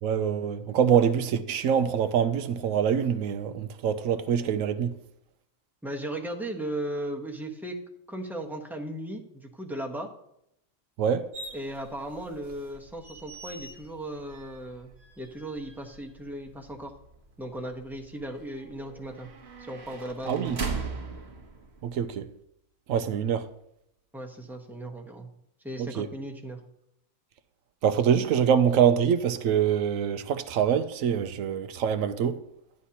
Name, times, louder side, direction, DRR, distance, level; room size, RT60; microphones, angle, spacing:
voice 1, 0.0-4.9 11.0-11.3 20.3-20.6 21.8-22.3 22.9-23.4 26.0-26.1 27.8-32.4, right 8 dB, 85° right, 1.0 m, -25 dB
voice 2, 5.8-7.8 8.1-10.1 11.5-16.9 17.4-19.3 19.6-20.6 24.1-25.3 25.6-26.6, right 1 dB, ahead, 0.8 m, -37 dB
sound 1, 11.3-22.2, right 4 dB, 55° right, 1.2 m, -41 dB
11.0 x 9.5 x 2.9 m
omnidirectional pair, 1.4 m